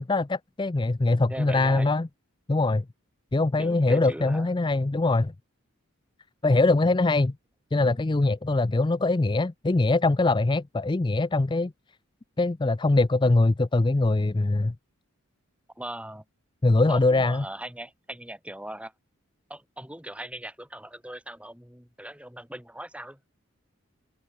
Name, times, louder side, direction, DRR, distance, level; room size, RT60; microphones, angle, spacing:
voice 1, 0.0-2.1 2.5-2.9 3.3-5.3 6.4-7.4 7.7-11.7 12.4-14.8 16.6-17.4, left 2 dB, 20° left, 0.4 m, -23 dB
voice 2, 1.3-1.9 3.6-4.5 15.8-16.2 16.8-18.9 19.5-23.2, right 1 dB, 5° right, 3.9 m, -39 dB
open air
head